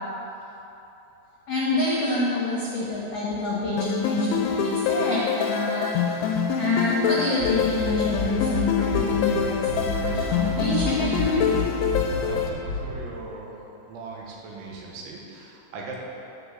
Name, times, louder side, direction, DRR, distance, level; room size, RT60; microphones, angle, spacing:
voice 1, 1.5-11.5, left 3 dB, 65° left, -7 dB, 1.5 m, -27 dB
sound 1, 3.8-12.5, left 5 dB, 85° left, 3.0 m, -26 dB
sound 2, 7.4-13.0, left 3 dB, 65° right, 3.0 m, -31 dB
voice 2, 12.0-13.5 13.9-16.0, right 3 dB, 90° right, -2 dB, 3.7 m, -39 dB
13.0 x 5.0 x 6.8 m, 3.0 s
omnidirectional pair, 5.2 m